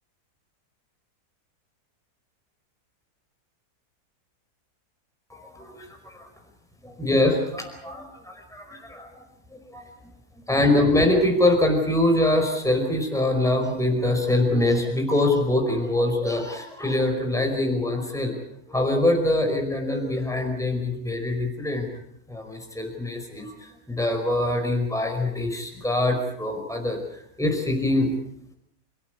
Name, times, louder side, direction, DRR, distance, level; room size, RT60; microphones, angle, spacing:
voice 1, 5.3-6.3 6.8-9.1 9.5-9.8 10.5-18.4 18.7-21.9 22.3-27.0 27.4-28.1, left 1 dB, ahead, 2 dB, 4.9 m, -24 dB
29.0 x 16.5 x 7.9 m, 0.72 s
omnidirectional pair, 1.7 m